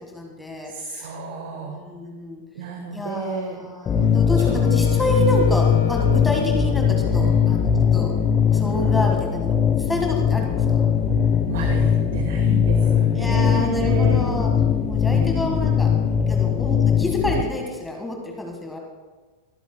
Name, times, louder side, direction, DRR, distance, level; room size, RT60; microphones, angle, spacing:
voice 1, 0.1-0.7 1.0-1.1 1.5-2.4 2.9-8.1 8.5-10.9 13.1-14.5 14.9-15.9 16.3-18.8, left 1 dB, 5° left, 1 dB, 1.7 m, -28 dB
voice 2, 0.6-1.9 2.5-3.6 4.0-4.1 4.4-4.5 7.2-7.4 11.5-14.3 15.1-15.5, right 3 dB, 55° right, 5 dB, 1.2 m, -31 dB
sound 1, 3.9-17.4, left 7 dB, 25° left, 0.8 m, -20 dB
Wind instrument woodwind instrument, 4.0-8.2, left 5 dB, 60° left, 0.9 m, -34 dB
22.0 x 12.0 x 2.2 m, 1.3 s
figure-of-eight pair, 90°, 0 cm